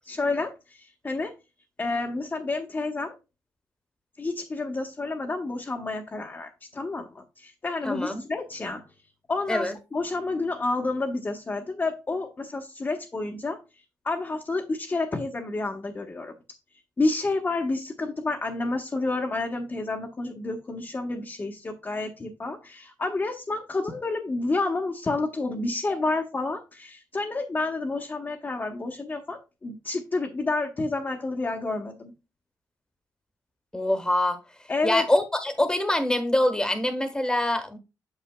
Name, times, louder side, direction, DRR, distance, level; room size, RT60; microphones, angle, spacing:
voice 1, 0.0-1.3 1.8-3.2 4.2-8.8 9.3-13.6 14.0-16.3 17.0-32.1 34.7-35.1, left 3 dB, 30° left, 1.1 m, -29 dB
voice 2, 7.8-8.2 9.5-9.7 33.7-34.4 34.8-37.8, left 1 dB, 10° left, 1.3 m, -24 dB
8.7 x 6.6 x 2.2 m
cardioid pair, 95°, 7 cm